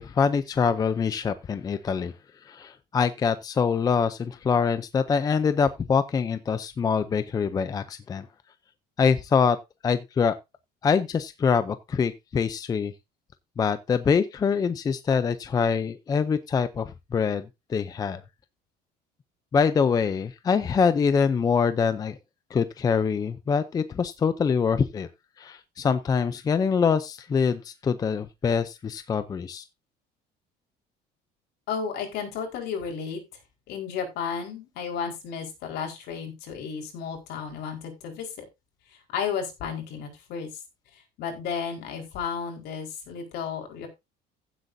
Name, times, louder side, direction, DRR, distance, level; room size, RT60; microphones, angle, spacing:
voice 1, 0.0-2.1 2.4-8.3 9.0-9.6 9.8-10.4 10.8-12.9 13.6-18.2 19.5-22.2 22.5-25.1 25.4-29.6, left 6 dB, 20° left, 0.5 m, -24 dB
voice 2, 31.7-33.2 33.7-38.3 38.9-40.5 41.2-43.9, left 6 dB, 65° left, 4.5 m, -33 dB
15.5 x 8.1 x 2.7 m
cardioid pair, 175°, 19 cm